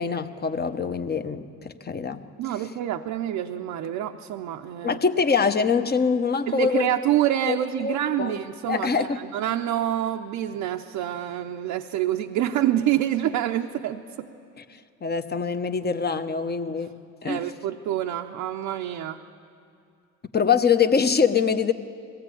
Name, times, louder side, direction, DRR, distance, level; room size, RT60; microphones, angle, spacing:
voice 1, 0.0-2.2 4.8-6.9 7.5-8.3 8.7-9.2 15.0-16.9 17.2-17.4 20.3-21.7, left 6 dB, 30° left, 9 dB, 1.0 m, -24 dB
voice 2, 2.4-5.0 6.5-14.3 17.2-19.2, right 12 dB, 80° right, 3 dB, 0.7 m, -27 dB
21.0 x 15.5 x 8.6 m, 2.5 s
supercardioid pair, 75°, 31 cm